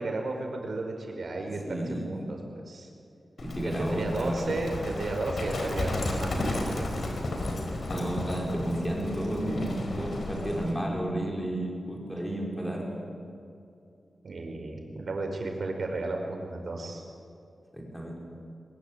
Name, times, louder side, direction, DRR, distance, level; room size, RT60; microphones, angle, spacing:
voice 1, 0.0-1.6 2.0-2.9 3.8-6.9 14.2-17.0, right 2 dB, 60° right, 3 dB, 5.0 m, -34 dB
voice 2, 1.7-2.0 3.4-4.5 7.9-12.9 17.7-18.2, right 1 dB, 5° left, -2 dB, 5.2 m, -32 dB
Livestock farm animals working animals, 3.4-10.7, left 1 dB, 65° left, 4.4 m, -33 dB
22.5 x 21.5 x 8.8 m, 2.6 s
wide cardioid pair, 140°, 0 cm